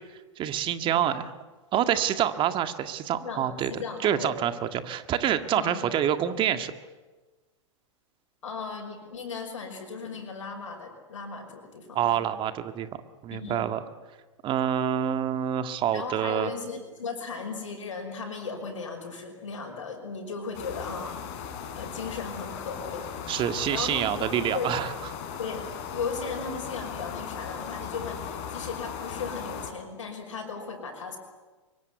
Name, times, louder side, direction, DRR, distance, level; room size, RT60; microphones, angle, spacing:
voice 1, 0.4-1.3 1.7-4.5 4.8-6.7 12.0-12.9 13.2-13.8 14.4-16.5 23.3-24.9, right 10 dB, 30° right, 9 dB, 1.8 m, -27 dB
voice 2, 3.2-4.4 5.5-5.8 8.4-12.2 13.3-13.7 15.9-23.1 23.7-24.9 25.4-31.2, left 5 dB, 75° left, 2 dB, 5.8 m, -36 dB
sound 1, 20.5-29.7, left 7 dB, 45° left, 4.8 m, -37 dB
24.0 x 23.0 x 9.6 m, 1.3 s
hypercardioid pair, 105°, 16 cm